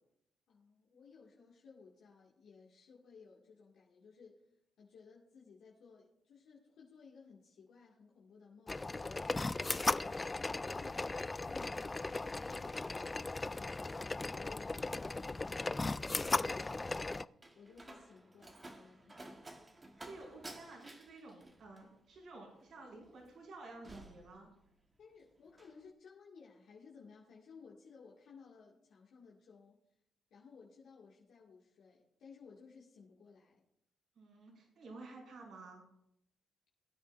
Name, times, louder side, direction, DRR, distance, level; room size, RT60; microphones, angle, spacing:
voice 1, 0.5-4.5 4.8-12.0 12.4-17.1 17.5-19.6 25.0-29.8 30.3-33.6, left 5 dB, 70° left, -4 dB, 2.0 m, -58 dB
sound 1, 8.7-17.2, left 3 dB, 20° left, 0.3 m, -37 dB
Slam, 17.1-25.0 25.3-25.8, right 2 dB, 25° right, 1.4 m, -54 dB
voice 2, 20.0-24.5 34.2-35.8, right 2 dB, 65° right, -2 dB, 5.6 m, -52 dB
19.5 x 9.4 x 2.6 m, 0.76 s
cardioid pair, 90°, 0 cm